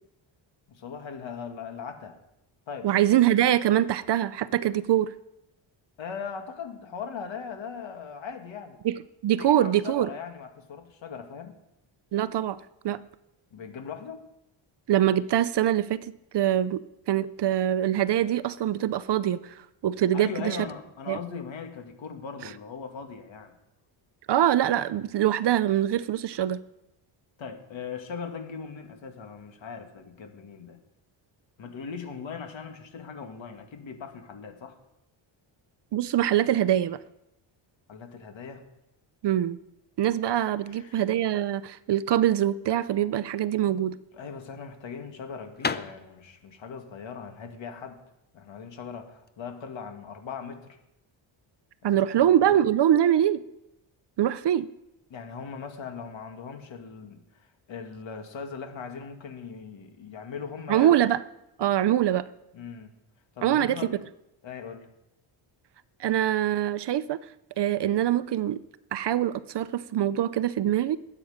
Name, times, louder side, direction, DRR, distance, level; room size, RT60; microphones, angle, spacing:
voice 1, 0.7-2.2 2.7-2.9 6.0-8.8 9.3-11.5 13.5-14.2 20.1-23.5 27.4-30.8 31.6-34.8 37.9-38.6 40.7-41.0 44.1-48.0 48.3-50.8 51.8-51.9 52.2-52.6 55.1-60.9 62.5-62.9 63.4-63.9 64.4-64.9, left 6 dB, 65° left, 5 dB, 2.3 m, -39 dB
voice 2, 2.8-5.1 8.8-10.1 12.1-12.6 12.8-13.0 14.9-16.0 16.3-20.6 21.1-21.2 24.3-26.6 35.9-37.0 39.2-39.6 40.0-44.0 51.8-53.4 54.2-54.7 60.7-61.2 61.6-62.3 63.4-63.8 66.0-67.2 67.6-68.6 68.9-71.0, right 11 dB, 55° right, 15 dB, 0.7 m, -24 dB
sound 1, 43.8-49.4, left 5 dB, 20° left, 0.6 m, -37 dB
20.5 x 8.6 x 5.1 m, 0.86 s
cardioid pair, 110°, 50 cm